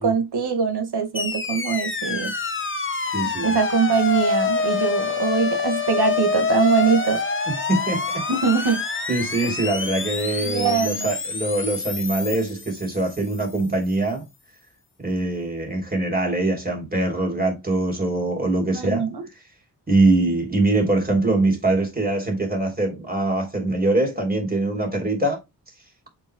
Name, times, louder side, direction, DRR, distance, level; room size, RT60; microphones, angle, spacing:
voice 1, 0.0-2.3 3.4-7.2 8.3-8.8 10.4-11.1 18.7-19.2, right 5 dB, 70° right, 2.0 m, -22 dB
sound 1, 1.1-13.4, left 4 dB, 30° left, 1.1 m, -26 dB
voice 2, 3.1-3.6 7.5-8.2 9.1-14.2 15.0-19.1 19.9-25.4, right 2 dB, 20° right, 3.6 m, -23 dB
7.1 x 5.8 x 2.3 m
wide cardioid pair, 100°, 40 cm